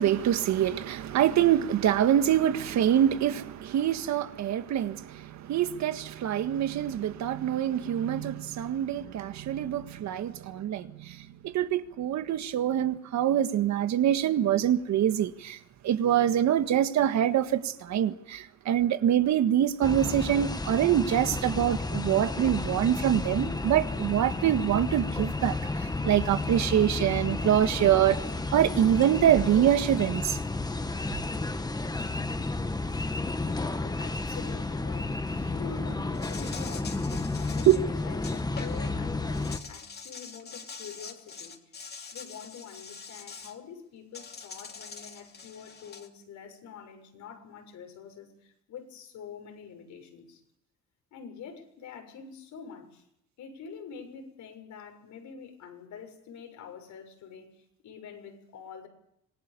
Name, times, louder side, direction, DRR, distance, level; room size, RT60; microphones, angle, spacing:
voice 1, 0.0-28.2 28.5-30.4, right 10 dB, 65° right, 1.7 m, -25 dB
sound 1, 19.8-39.6, left 3 dB, 15° left, 1.6 m, -32 dB
voice 2, 33.4-41.8 42.1-50.4 51.1-53.0 53.4-58.9, left 6 dB, 75° left, 6.9 m, -46 dB
Insect, 36.1-38.9 39.3-43.5 44.1-46.1, left 5 dB, 35° left, 3.0 m, -44 dB
26.5 x 20.0 x 6.9 m
cardioid pair, 110°, 30 cm